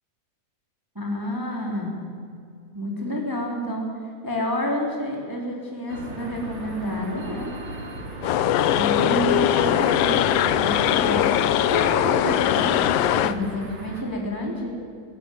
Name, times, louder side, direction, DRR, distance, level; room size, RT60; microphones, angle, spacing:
voice 1, 0.9-2.0 2.7-4.0 4.2-7.5 8.7-14.8, left 1 dB, 5° right, -1 dB, 3.2 m, -29 dB
sound 1, 5.9-14.0, right 1 dB, 65° right, 4.3 m, -37 dB
sound 2, 8.2-13.3, left 11 dB, 75° left, 1.5 m, -21 dB
19.5 x 17.0 x 9.3 m, 2.4 s
omnidirectional pair, 3.6 m